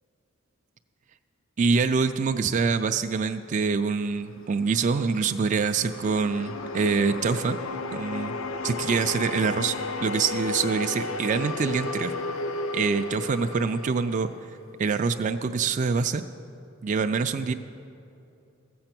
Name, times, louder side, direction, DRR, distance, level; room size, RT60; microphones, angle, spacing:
voice 1, 1.6-7.6 7.9-8.4 8.6-9.7 10.0-12.1 12.7-14.3 14.8-16.2 16.8-17.5, right 5 dB, 35° right, 7 dB, 0.3 m, -25 dB
sound 1, 4.4-14.8, left 3 dB, 80° left, 0.6 m, -33 dB
14.5 x 7.8 x 5.9 m, 2.7 s
head